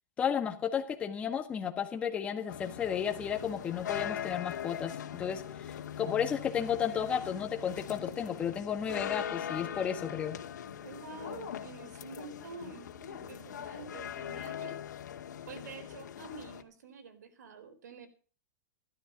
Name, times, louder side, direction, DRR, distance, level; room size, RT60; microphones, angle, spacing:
voice 1, 0.2-10.4, left 8 dB, 10° left, 6 dB, 1.5 m, -33 dB
sound 1, 2.5-16.6, left 10 dB, 75° left, 2.1 m, -41 dB
voice 2, 10.8-14.8 15.5-18.1, right 4 dB, 70° right, 9 dB, 4.1 m, -48 dB
15.5 x 12.5 x 5.2 m, 0.41 s
supercardioid pair, 175°, 10 cm